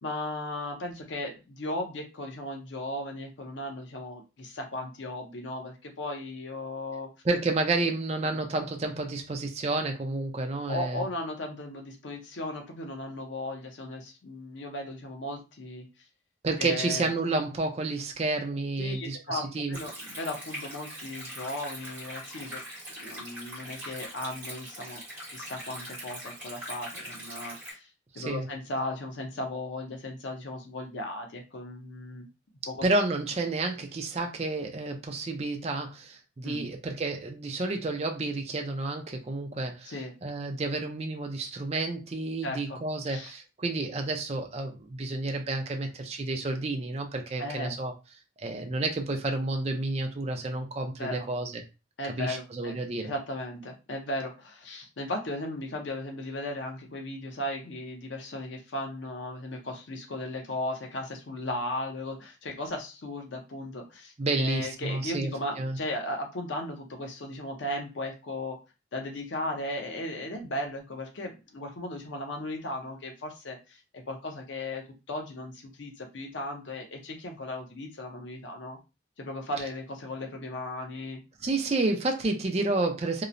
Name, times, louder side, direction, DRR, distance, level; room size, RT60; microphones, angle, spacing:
voice 1, 0.0-7.1 8.2-8.4 10.7-15.9 16.6-17.1 18.8-22.6 23.0-25.0 25.3-27.9 28.1-32.3 32.7-32.8 36.4-36.7 39.9-40.1 42.4-42.8 43.1-43.3 47.4-47.8 51.0-51.3 52.0-68.6 68.9-78.8 79.2-81.2, left 1 dB, 80° left, 0.7 m, -36 dB
voice 2, 7.2-11.1 16.4-19.8 28.1-28.5 32.8-40.0 40.2-47.9 48.4-51.6 52.2-53.1 64.2-65.3 65.6-65.8 81.4-83.2, right 2 dB, 35° right, 0.4 m, -30 dB
Stream, 19.7-27.7, equal, 10° right, 1.1 m, -42 dB
2.8 x 2.0 x 2.5 m
head